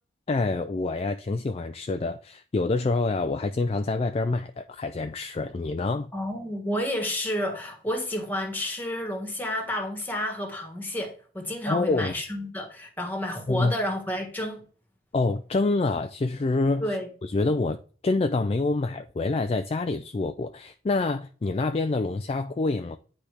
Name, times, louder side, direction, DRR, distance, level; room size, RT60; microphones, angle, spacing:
voice 1, 0.3-6.1 11.7-12.1 13.5-13.7 15.1-17.0 17.2-17.8 18.0-23.0, left 3 dB, 30° left, 0.3 m, -26 dB
voice 2, 6.1-14.6 16.8-17.1, left 1 dB, 10° left, 1.5 m, -30 dB
9.7 x 4.3 x 3.4 m
head